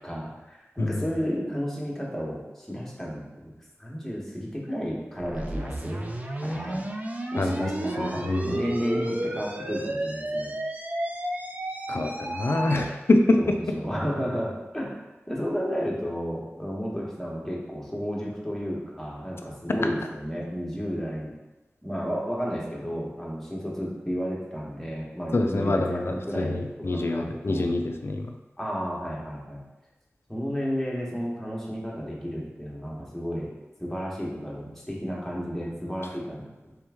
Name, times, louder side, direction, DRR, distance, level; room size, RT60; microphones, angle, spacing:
voice 1, 0.0-3.5 3.8-6.0 6.4-6.8 7.3-10.5 13.4-15.0 15.3-21.3 21.8-26.5 26.9-27.7 28.6-29.6 30.3-33.5 33.8-36.4, equal, 5° left, -4 dB, 1.0 m, -32 dB
sound 1, 5.2-13.0, right 1 dB, 35° right, 0.4 m, -32 dB
voice 2, 7.4-8.6 11.9-13.5 25.3-28.3, left 2 dB, 55° left, 4 dB, 0.4 m, -25 dB
3.4 x 3.1 x 3.4 m, 1.1 s
wide cardioid pair, 65°, 5 cm